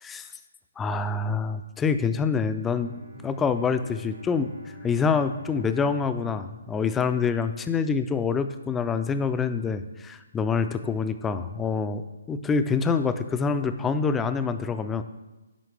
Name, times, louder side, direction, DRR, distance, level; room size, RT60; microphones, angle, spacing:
voice 1, 0.8-2.9 3.2-4.5 4.8-12.0 12.3-15.0, left 5 dB, 10° left, 10 dB, 0.3 m, -26 dB
Bowed string instrument, 2.7-7.6, equal, 80° right, 2.0 m, -46 dB
9.2 x 5.6 x 3.3 m, 1.1 s
hypercardioid pair, 145°, 0 cm